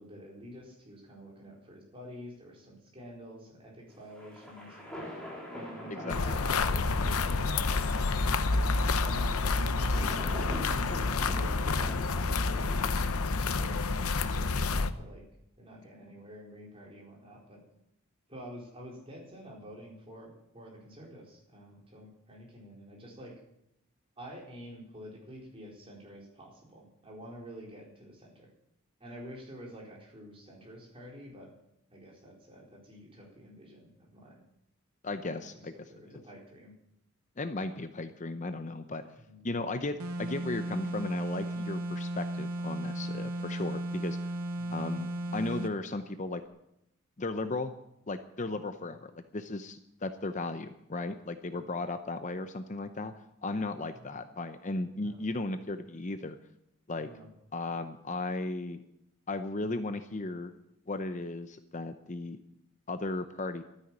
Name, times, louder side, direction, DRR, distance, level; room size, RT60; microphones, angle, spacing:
voice 1, 0.0-4.8 5.5-8.3 9.0-12.9 13.4-15.2 15.6-17.6 18.3-23.3 24.2-28.5 29.0-31.5 31.9-34.4 35.1-36.7 39.2-39.4 44.6-44.8 48.7-48.9 51.5-51.7 53.9-54.1 55.0-55.2 57.0-57.3, equal, 25° right, -2 dB, 4.3 m, -49 dB
sound 1, 3.9-14.4, left 1 dB, 5° left, 3.8 m, -44 dB
voice 2, 6.0-6.4 35.0-36.2 37.4-39.0 39.4-44.2 44.7-46.4 47.2-47.7 48.1-53.1 53.4-56.4 56.9-57.1 57.5-58.8 59.3-60.5 60.9-62.4 62.9-63.6, left 2 dB, 35° left, 9 dB, 0.7 m, -36 dB
sound 2, 6.1-14.9, left 3 dB, 85° left, 0.8 m, -29 dB
sound 3, 40.0-45.8, right 1 dB, 80° right, 1.1 m, -35 dB
12.5 x 10.0 x 8.9 m, 0.81 s
head